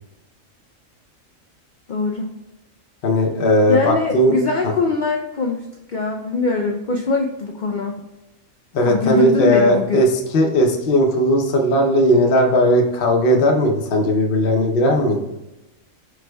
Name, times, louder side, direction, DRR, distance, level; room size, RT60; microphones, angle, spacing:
voice 1, 1.9-2.3 3.7-5.6 5.9-8.0 8.9-10.0, left 3 dB, 85° left, 1 dB, 0.4 m, -22 dB
voice 2, 3.0-4.4 4.6-4.7 8.7-15.2, equal, 50° left, 1 dB, 0.8 m, -17 dB
5.0 x 4.7 x 2.2 m, 0.98 s
omnidirectional pair, 1.4 m